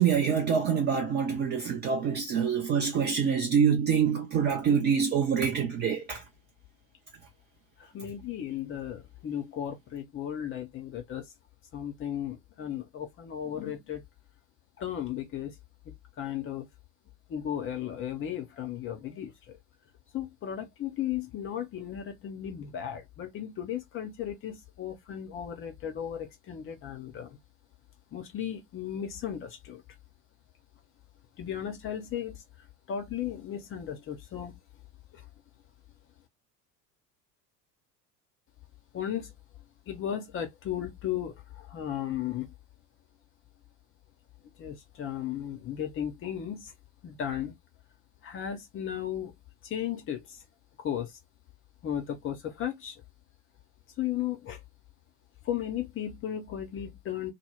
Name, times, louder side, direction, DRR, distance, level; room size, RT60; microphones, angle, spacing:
voice 1, 0.0-6.2, right 7 dB, 25° right, 0.4 m, -26 dB
voice 2, 7.8-11.2 11.7-14.0 14.8-15.5 16.2-16.7 17.3-19.6 20.1-27.4 28.1-29.8 31.4-32.4 32.9-34.5 35.1-35.2 38.9-39.3 39.9-42.5 44.6-46.7 47.0-47.5 48.2-49.3 49.6-50.4 50.8-51.1 51.8-53.0 54.0-54.6 55.5-57.3, left 10 dB, 25° left, 0.6 m, -35 dB
2.1 x 2.0 x 3.2 m
figure-of-eight pair, 70°, 48 cm